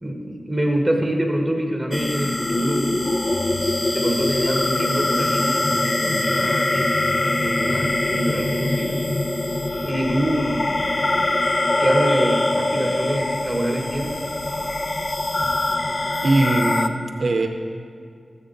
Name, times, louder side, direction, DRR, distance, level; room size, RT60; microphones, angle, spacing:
voice 1, 0.0-3.3 3.9-7.0 7.2-9.0 9.8-10.7 11.8-14.2, right 1 dB, 5° right, 0 dB, 1.5 m, -25 dB
sound 1, 1.9-16.9, left 2 dB, 40° left, 0.4 m, -23 dB
voice 2, 16.2-17.5, right 2 dB, 65° right, 4 dB, 0.6 m, -20 dB
14.0 x 7.8 x 3.9 m, 2.3 s
wide cardioid pair, 95°, 0 cm